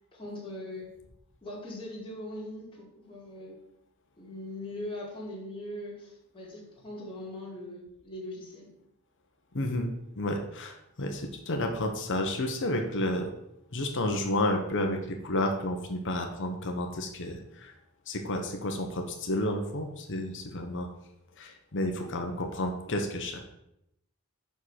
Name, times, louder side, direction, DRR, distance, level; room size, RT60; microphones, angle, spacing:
voice 1, 0.1-0.9 1.4-3.6 4.2-8.7, left 1 dB, 25° left, -6 dB, 2.3 m, -40 dB
voice 2, 9.5-9.9 10.2-13.3 13.7-17.7 18.1-20.9 21.4-23.4, left 1 dB, 60° left, 4 dB, 1.0 m, -31 dB
5.7 x 5.3 x 6.3 m, 0.81 s
head